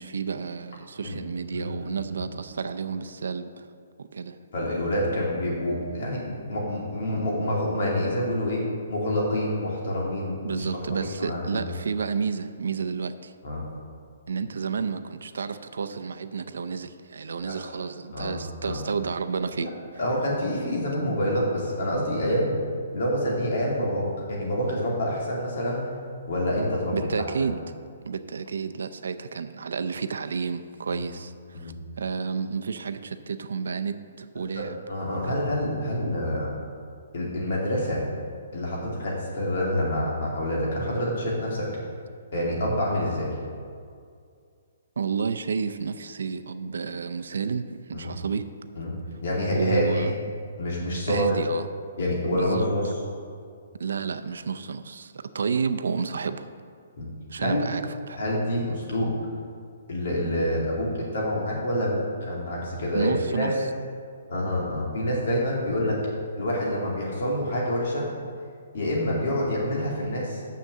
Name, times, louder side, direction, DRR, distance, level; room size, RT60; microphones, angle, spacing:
voice 1, 0.0-3.7 4.0-4.4 10.4-13.3 14.3-19.7 26.9-27.6 28.0-34.8 35.3-35.4 45.0-48.4 49.5-50.1 51.1-51.7 52.3-52.7 53.8-56.5 57.3-58.2 62.9-63.5, right 5 dB, 80° right, 10 dB, 0.5 m, -31 dB
voice 2, 1.5-2.0 4.5-10.6 11.0-11.7 13.4-13.6 17.4-17.5 18.1-18.3 18.6-18.8 19.6-19.7 20.0-22.6 22.9-25.9 26.3-27.0 27.4-27.5 30.9-31.0 31.5-31.7 34.6-36.5 37.1-38.0 38.5-41.7 42.3-43.3 47.9-48.1 48.8-49.0 49.2-50.0 50.6-51.3 52.0-53.0 57.0-57.1 57.4-57.6 58.1-59.1 59.9-63.5 64.3-66.0 66.3-68.1 68.7-70.4, left 1 dB, 50° left, -3 dB, 2.6 m, -27 dB
6.8 x 6.4 x 7.3 m, 2.2 s
hypercardioid pair, 175°, 0 cm